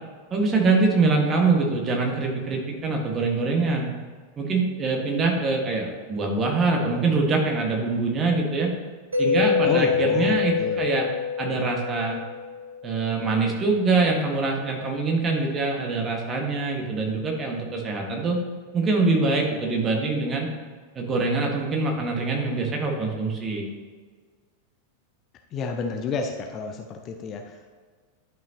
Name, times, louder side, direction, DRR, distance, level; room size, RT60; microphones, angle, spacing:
voice 1, 0.3-3.9 4.4-8.7 9.2-11.1 11.4-12.2 12.8-18.4 18.7-20.5 20.9-23.6, right 3 dB, 25° right, 0 dB, 1.6 m, -24 dB
Mallet percussion, 9.1-12.9, left 6 dB, 75° right, 1.0 m, -25 dB
voice 2, 9.6-10.9 25.5-27.7, left 4 dB, 30° left, 4 dB, 0.6 m, -30 dB
11.0 x 5.4 x 2.9 m, 1.5 s
figure-of-eight pair, 90°, 0 cm